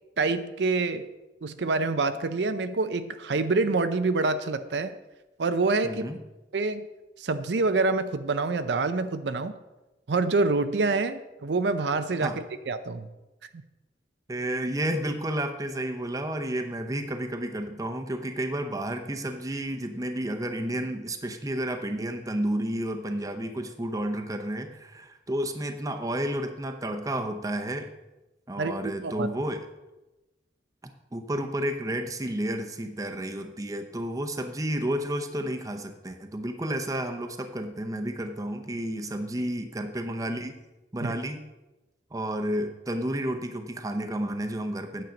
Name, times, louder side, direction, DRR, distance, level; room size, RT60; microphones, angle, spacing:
voice 1, 0.2-1.1 1.4-4.9 5.4-6.0 6.5-6.9 7.2-9.5 10.1-13.1 28.6-29.3 41.0-41.1, right 3 dB, 75° right, 10 dB, 0.5 m, -26 dB
voice 2, 5.8-6.2 12.2-12.4 14.3-27.9 28.5-29.7 30.8-40.6 40.9-41.4 42.1-45.0, right 1 dB, 20° right, 6 dB, 0.7 m, -31 dB
9.3 x 7.3 x 5.1 m, 1.0 s
head